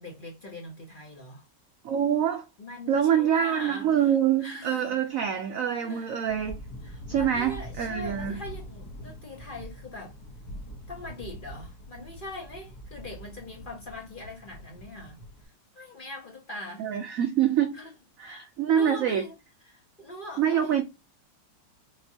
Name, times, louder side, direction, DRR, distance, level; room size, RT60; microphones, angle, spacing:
voice 1, 0.0-1.4 2.6-4.0 4.4-5.0 5.8-6.2 6.8-10.1 10.9-16.9 17.7-17.9 18.2-19.3 19.6-20.8, left 1 dB, 35° left, 0.9 m, -42 dB
voice 2, 1.8-2.5 2.9-6.6 7.1-8.4 16.8-17.7 18.2-19.2 20.4-20.8, right 9 dB, 75° right, 0.7 m, -25 dB
sound 1, 6.2-15.5, equal, 60° left, 1.3 m, -43 dB
5.3 x 2.4 x 2.7 m
omnidirectional pair, 2.0 m